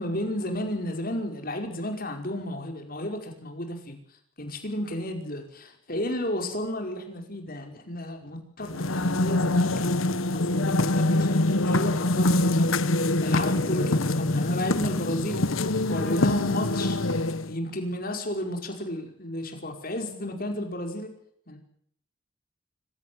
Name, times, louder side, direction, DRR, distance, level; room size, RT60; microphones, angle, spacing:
voice 1, 0.0-4.0 4.4-10.0 10.3-17.2 17.5-21.1 21.5-21.6, left 1 dB, 45° left, 4 dB, 5.4 m, -33 dB
sound 1, 8.6-17.6, left 2 dB, 85° left, 1.3 m, -24 dB
26.0 x 17.0 x 9.6 m, 0.67 s
head